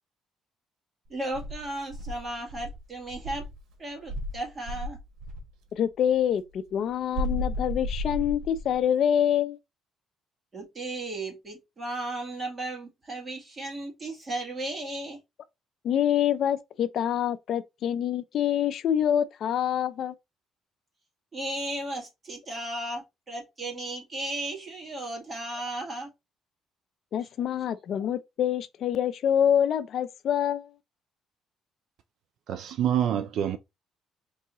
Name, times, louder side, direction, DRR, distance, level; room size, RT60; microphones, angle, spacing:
voice 1, 1.1-3.5 3.8-5.0 10.5-15.2 21.3-26.1 27.2-27.3, right 1 dB, 25° right, 1.8 m, -35 dB
Insect, 1.3-3.6 4.1-5.5 7.1-8.8, left 1 dB, 80° right, 1.1 m, -33 dB
voice 2, 5.7-9.6 15.8-20.1 27.1-30.7, left 9 dB, 55° left, 0.4 m, -26 dB
voice 3, 32.5-33.6, right 10 dB, 65° right, 0.4 m, -26 dB
4.6 x 2.8 x 2.9 m
cardioid pair, 140°, 0 cm